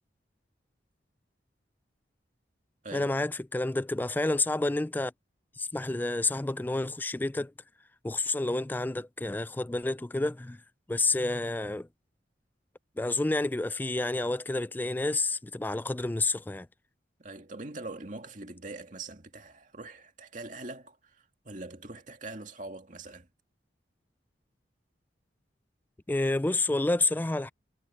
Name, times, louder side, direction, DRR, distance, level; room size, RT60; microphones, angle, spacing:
voice 1, 2.9-5.1 5.6-7.5 8.0-10.6 10.9-11.9 13.0-16.7 26.1-27.5, left 2 dB, 10° left, 0.3 m, -29 dB
voice 2, 17.2-23.3, right 2 dB, 45° right, 2.3 m, -43 dB
head